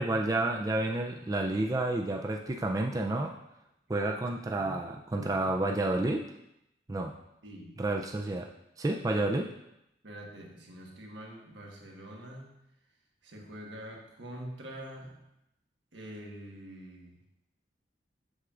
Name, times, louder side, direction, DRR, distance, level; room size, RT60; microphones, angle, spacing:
voice 1, 0.0-3.3 3.9-6.2 6.9-7.2 7.8-8.5 8.8-9.5, right 2 dB, 20° right, 2 dB, 0.3 m, -30 dB
voice 2, 5.2-5.5 7.4-7.8 10.0-12.6 13.2-15.2 15.9-17.2, equal, 80° right, 0 dB, 1.3 m, -45 dB
7.8 x 6.9 x 2.4 m, 0.85 s
head